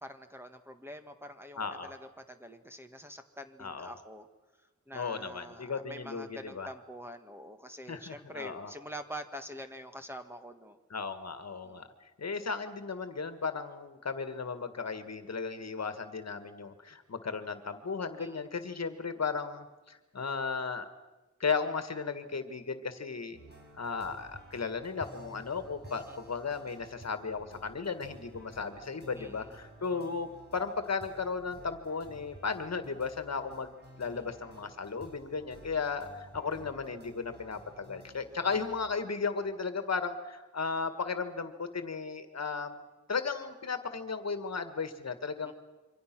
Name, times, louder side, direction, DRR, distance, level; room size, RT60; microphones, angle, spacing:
voice 1, 0.0-4.3 4.9-10.8 11.6-11.9 18.1-18.4 25.9-26.2 29.1-29.5 34.1-34.5 45.4-45.5, equal, 10° right, 7 dB, 1.7 m, -46 dB
voice 2, 1.6-1.9 3.6-3.9 4.9-6.7 7.9-8.7 10.9-11.9 12.2-20.9 21.4-23.4 23.8-42.8 43.1-45.5, left 5 dB, 60° left, 9 dB, 1.8 m, -35 dB
sound 1, 23.3-38.8, right 1 dB, 35° right, 5.6 m, -53 dB
27.5 x 24.5 x 6.1 m, 1.1 s
wide cardioid pair, 110°, 30 cm